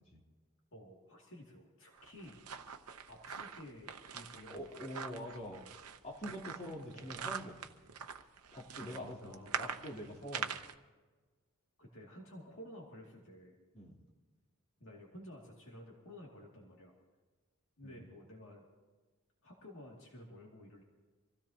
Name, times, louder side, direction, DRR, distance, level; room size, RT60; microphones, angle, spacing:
voice 1, 0.7-2.4 3.1-4.7 6.9-7.1 8.8-9.8 11.8-13.6 14.8-16.9 17.8-18.7 19.4-20.8, left 1 dB, 60° left, -2 dB, 2.5 m, -53 dB
sound 1, 1.9-10.7, right 7 dB, 85° right, 0.9 m, -44 dB
voice 2, 4.5-5.7 6.0-7.6 8.5-10.5 13.7-14.0 17.8-18.0, equal, 30° left, -3 dB, 3.4 m, -45 dB
25.5 x 16.0 x 2.9 m, 1.3 s
head